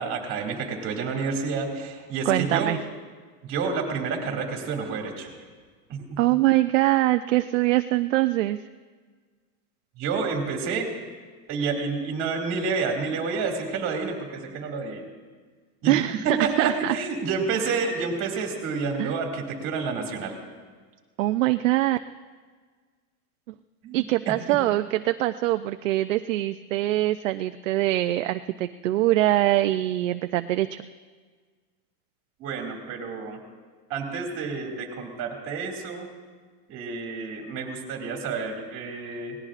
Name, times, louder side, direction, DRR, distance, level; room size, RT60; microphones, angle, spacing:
voice 1, 0.0-2.7 3.4-5.3 5.9-6.2 10.0-10.9 11.5-15.1 15.8-16.0 16.2-20.4 23.8-24.0 32.4-33.4 33.9-36.1 36.7-39.4, right 4 dB, 25° right, 1 dB, 2.3 m, -29 dB
voice 2, 2.3-2.8 6.2-8.6 15.9-17.0 19.0-19.1 21.2-22.0 23.9-30.9, right 16 dB, 55° right, 9 dB, 0.5 m, -23 dB
26.0 x 18.5 x 2.5 m, 1.5 s
supercardioid pair, 170°, 47 cm